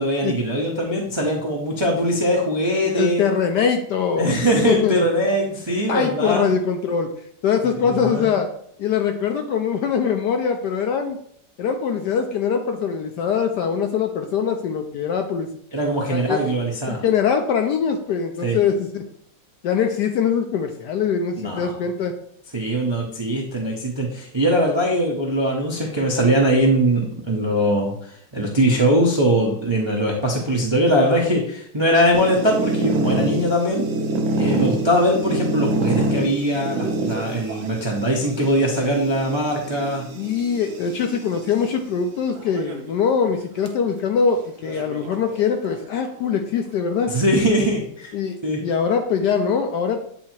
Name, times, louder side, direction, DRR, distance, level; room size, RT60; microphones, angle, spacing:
voice 1, 0.0-3.2 4.2-6.5 7.6-8.3 15.7-17.0 18.4-18.6 21.4-21.7 22.5-33.8 34.4-40.1 47.1-48.1 48.4-48.6, equal, 40° right, -2 dB, 0.4 m, -21 dB
voice 2, 2.8-5.1 5.9-7.1 7.4-8.5 8.8-11.2 11.6-15.5 16.1-16.5 16.9-19.1 19.6-22.1 40.1-47.1 48.1-50.0, left 6 dB, 75° left, 5 dB, 1.0 m, -22 dB
sound 1, 32.1-41.6 42.4-42.9 43.2-43.3 43.7-43.8 44.6-45.8, right 2 dB, 60° right, 0.8 m, -26 dB
8.4 x 2.8 x 4.4 m, 0.66 s
omnidirectional pair, 2.2 m